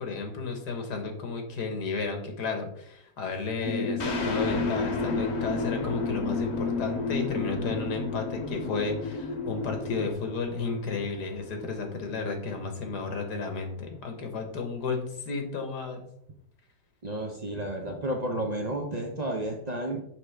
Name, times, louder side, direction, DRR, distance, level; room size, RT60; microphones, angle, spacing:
voice 1, 0.0-16.0, left 4 dB, 85° left, 4 dB, 1.7 m, -32 dB
sound 1, 3.6-10.1, left 3 dB, 65° left, 1.3 m, -31 dB
sound 2, 4.0-13.2, left 4 dB, 50° left, 1.0 m, -40 dB
voice 2, 17.0-20.1, right 1 dB, 50° right, 2 dB, 0.5 m, -32 dB
6.0 x 5.0 x 3.3 m, 0.71 s
omnidirectional pair, 1.7 m